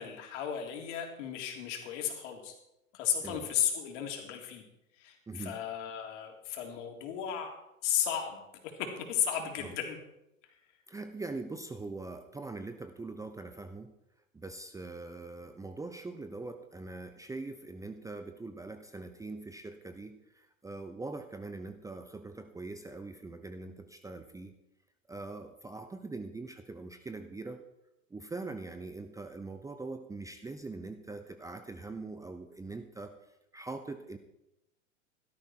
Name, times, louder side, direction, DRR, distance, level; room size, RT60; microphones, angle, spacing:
voice 1, 0.0-2.6 2.9-4.6 5.0-7.5 7.8-8.4 8.8-10.0, left 9 dB, 60° left, 3 dB, 3.6 m, -34 dB
voice 2, 5.3-5.6 9.6-9.7 10.9-13.9 14.3-24.5 25.1-27.6 28.1-34.2, right 3 dB, 10° right, 8 dB, 0.8 m, -42 dB
16.5 x 13.0 x 4.6 m, 0.87 s
hypercardioid pair, 105°, 41 cm